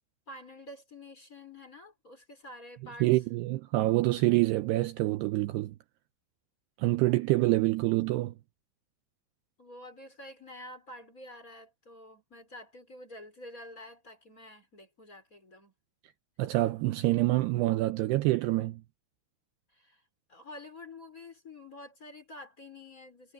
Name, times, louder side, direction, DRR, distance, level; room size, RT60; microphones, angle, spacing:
voice 1, 0.3-3.1 9.6-15.7 19.7-20.0 20.3-23.3, left 1 dB, 20° left, 4.6 m, -48 dB
voice 2, 3.0-5.8 6.8-8.3 16.4-18.8, right 18 dB, 80° right, 2.5 m, -26 dB
omnidirectional pair, 5.4 m